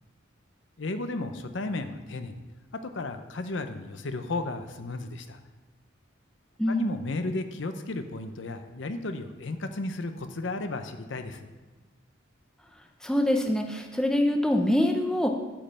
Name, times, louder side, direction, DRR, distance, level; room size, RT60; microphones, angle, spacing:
voice 1, 0.8-2.4 2.8-5.4 6.7-11.5, left 2 dB, 65° left, 8 dB, 0.7 m, -34 dB
voice 2, 6.6-6.9 13.0-15.3, left 1 dB, 5° left, 3 dB, 0.6 m, -24 dB
8.6 x 5.3 x 7.4 m, 1.3 s
head